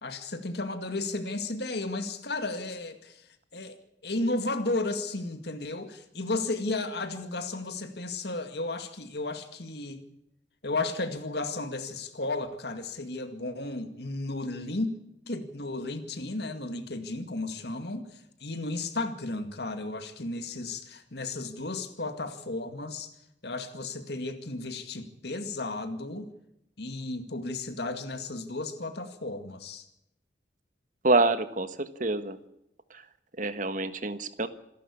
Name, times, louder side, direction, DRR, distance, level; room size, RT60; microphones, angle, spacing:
voice 1, 0.0-3.3 3.5-3.8 4.0-10.0 10.6-14.9 15.3-23.1 23.4-26.3 26.8-29.8, left 2 dB, 65° left, 8 dB, 2.1 m, -34 dB
voice 2, 31.0-32.4 32.9-33.0 33.4-34.5, right 2 dB, 45° right, 11 dB, 1.5 m, -26 dB
27.0 x 12.0 x 8.5 m, 0.81 s
head